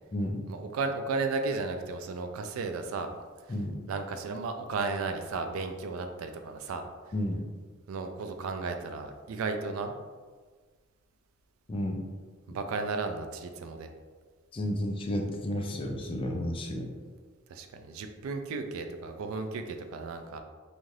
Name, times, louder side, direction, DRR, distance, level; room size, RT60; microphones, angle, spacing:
voice 1, 0.5-3.1 3.5-3.6 3.9-7.1 7.9-9.9 12.5-13.9 17.5-20.4, right 4 dB, 85° right, 6 dB, 0.3 m, -34 dB
voice 2, 7.1-7.4 11.7-12.0 14.5-16.9, left 1 dB, 25° left, 3 dB, 0.3 m, -31 dB
2.6 x 2.4 x 3.2 m, 1.5 s
head